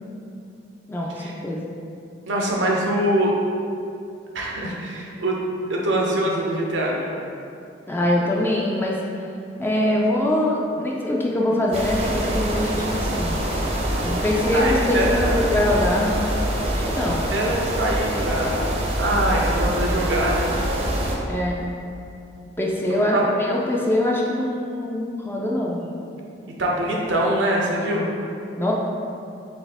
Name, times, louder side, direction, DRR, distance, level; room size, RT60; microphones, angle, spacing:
voice 1, 0.9-1.7 7.9-9.0 9.6-13.4 14.0-16.2 16.7-17.3 21.3-21.6 22.6-25.8 28.6-28.7, left 1 dB, 10° left, -3 dB, 0.4 m, -23 dB
voice 2, 2.3-3.3 4.3-5.4 5.7-7.1 14.5-15.5 17.3-20.6 22.9-23.2 25.8-25.9 26.6-28.1, right 1 dB, 80° right, -2 dB, 0.7 m, -24 dB
sound 1, 11.7-21.2, right 1 dB, 35° right, 0.6 m, -25 dB
4.3 x 3.3 x 3.4 m, 2.6 s
head